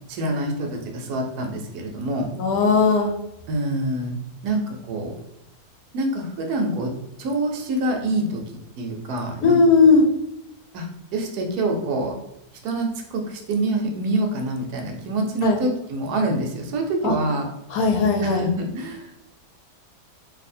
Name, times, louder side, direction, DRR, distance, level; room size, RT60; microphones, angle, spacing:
voice 1, 0.1-2.3 3.5-4.1 4.4-5.2 5.9-6.9 7.2-8.4 8.8-9.6 10.7-12.1 12.6-17.5 18.2-19.3, right 2 dB, 75° right, 3 dB, 1.2 m, -26 dB
voice 2, 2.4-3.1 9.4-10.0 15.4-15.6 17.0-17.1 17.7-18.4, left 4 dB, 70° left, 3 dB, 1.0 m, -17 dB
2.8 x 2.7 x 4.2 m, 0.84 s
omnidirectional pair, 1.7 m